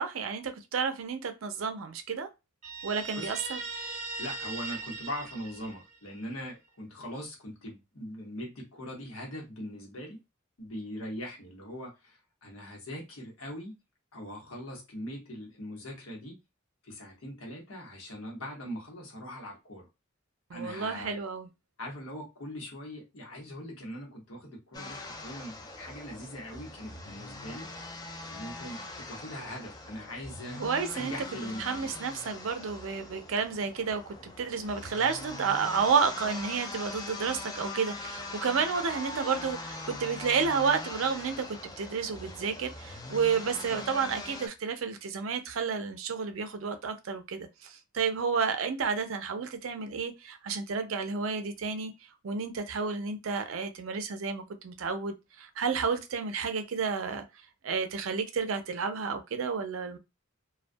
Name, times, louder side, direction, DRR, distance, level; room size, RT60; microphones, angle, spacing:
voice 1, 0.0-2.3 2.8-3.6 20.5-21.5 30.6-31.1 31.6-51.9 52.2-57.2 57.6-60.0, right 5 dB, 70° right, 0.5 m, -31 dB
Guitar, 2.6-6.2, right 3 dB, 35° right, 0.7 m, -39 dB
voice 2, 4.2-10.2 10.6-13.8 14.1-16.4 16.8-19.9 20.5-21.1 21.8-27.7 28.3-30.6 30.9-31.9 43.6-43.8, equal, 80° left, 0.9 m, -41 dB
sound 1, 24.7-44.5, left 2 dB, 20° left, 0.3 m, -42 dB
2.3 x 2.2 x 2.5 m
head